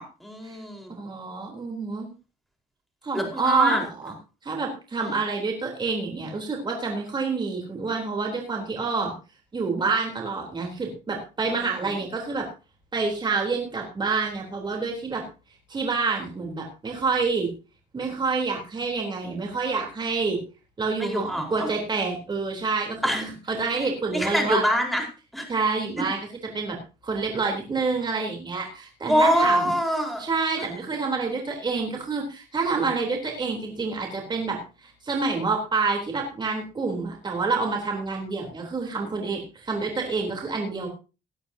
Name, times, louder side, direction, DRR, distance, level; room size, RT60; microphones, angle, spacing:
voice 1, 0.0-0.9 3.1-3.8 5.0-5.2 11.5-12.0 21.0-21.7 23.0-23.4 24.1-25.0 25.3-25.5 29.1-30.2 30.6-30.7, equal, ahead, 2 dB, 4.6 m, -25 dB
voice 2, 0.9-2.1 3.0-4.1 4.4-9.1 9.5-12.5 12.9-15.3 15.7-17.5 17.9-20.4 20.8-24.6 25.5-26.2 26.5-26.8 27.0-29.7 30.2-40.9, right 4 dB, 25° right, 1 dB, 3.6 m, -27 dB
18.0 x 11.5 x 2.8 m, 0.31 s
cardioid pair, 110°, 17 cm